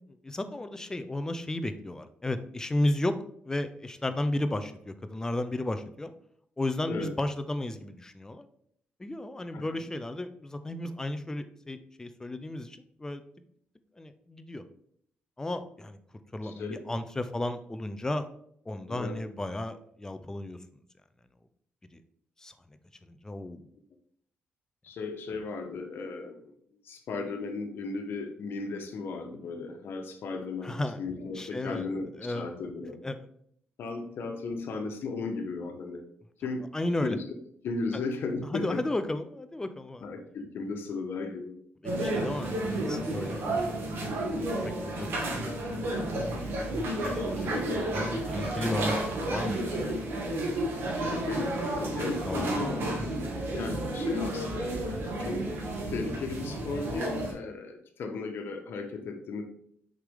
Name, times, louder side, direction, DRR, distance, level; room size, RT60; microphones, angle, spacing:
voice 1, 0.2-3.1 3.4-6.1 6.6-8.5 9.0-13.2 14.0-14.6 15.4-16.0 16.3-18.3 18.7-20.6 21.9-22.0 22.4-22.5 23.1-23.6 30.6-31.0 31.3-31.9 32.2-32.5 33.0-33.3 36.7-37.2 38.5-40.1 41.8-43.4 44.6-49.7 52.2-52.5, left 1 dB, 15° left, 9 dB, 0.6 m, -34 dB
voice 2, 16.4-16.8 18.9-19.2 24.8-26.5 26.8-33.0 33.8-36.0 36.4-36.7 37.0-37.2 37.6-38.8 40.0-41.5 51.0-55.4 55.9-59.4, left 3 dB, 70° left, 4 dB, 1.3 m, -36 dB
sound 1, 41.8-57.3, right 1 dB, 70° right, 2.2 m, -31 dB
6.5 x 5.0 x 3.7 m, 0.68 s
cardioid pair, 115°, 4 cm